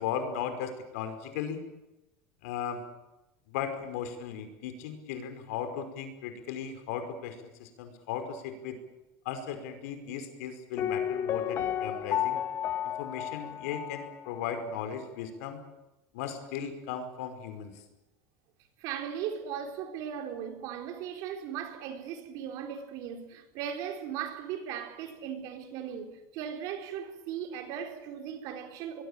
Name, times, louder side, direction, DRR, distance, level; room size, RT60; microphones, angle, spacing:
voice 1, 0.0-1.6 2.4-2.8 3.5-8.8 9.3-12.4 12.8-15.6 16.1-17.7, left 8 dB, 85° left, 5.3 m, -37 dB
Piano, 10.8-14.5 14.8-14.9, left 10 dB, 35° left, 0.9 m, -32 dB
voice 2, 18.8-29.0, right 8 dB, 50° right, 4.1 m, -38 dB
24.0 x 22.5 x 8.9 m
cardioid pair, 170°, 8 cm